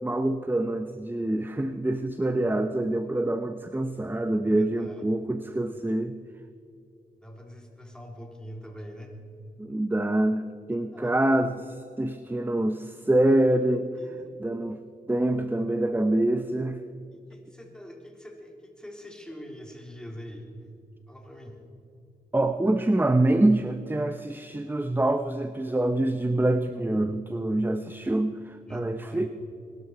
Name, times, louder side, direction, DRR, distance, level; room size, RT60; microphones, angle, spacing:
voice 1, 0.0-6.2 9.6-10.4 10.7-13.9 14.4-14.8 15.1-16.8 22.3-29.3, right 1 dB, 10° right, 9 dB, 0.7 m, -25 dB
voice 2, 4.5-5.1 7.2-9.1 10.7-11.2 14.0-14.3 17.1-20.8 21.1-21.6 28.7-29.3, equal, 5° left, 1 dB, 3.5 m, -44 dB
21.0 x 12.5 x 4.7 m, 2.6 s
cardioid pair, 60°, 17 cm